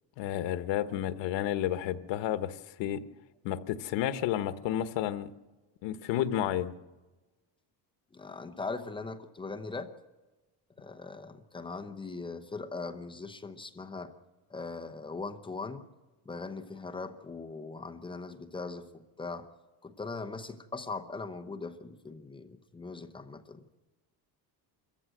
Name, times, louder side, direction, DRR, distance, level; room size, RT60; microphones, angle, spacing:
voice 1, 0.2-3.0 3.4-5.3 5.8-6.7, left 11 dB, 90° left, 12 dB, 1.2 m, -31 dB
voice 2, 8.1-9.9 10.8-14.1 14.5-15.8 16.3-19.5 19.8-23.7, left 3 dB, 10° left, 6 dB, 0.8 m, -40 dB
26.0 x 14.5 x 7.7 m, 1.2 s
cardioid pair, 180°, 42 cm